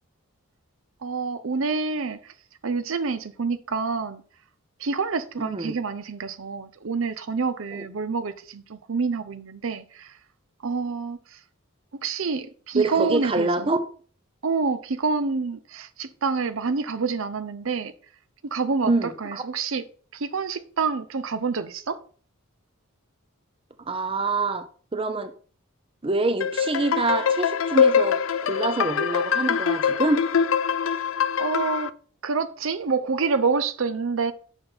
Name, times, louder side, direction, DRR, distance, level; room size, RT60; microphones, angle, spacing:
voice 1, 1.0-2.3 2.6-4.2 4.8-10.1 10.6-11.4 11.9-13.7 14.4-17.9 18.4-19.8 20.1-22.0 31.4-31.9 32.2-34.3, right 4 dB, 65° right, 0.6 m, -27 dB
voice 2, 5.4-5.7 7.7-7.8 12.8-13.8 18.9-19.4 23.9-24.6 24.9-25.3 26.0-30.2, right 3 dB, 25° right, 0.6 m, -25 dB
sound 1, 26.4-31.9, left 7 dB, 65° left, 0.4 m, -23 dB
6.8 x 5.8 x 4.4 m
head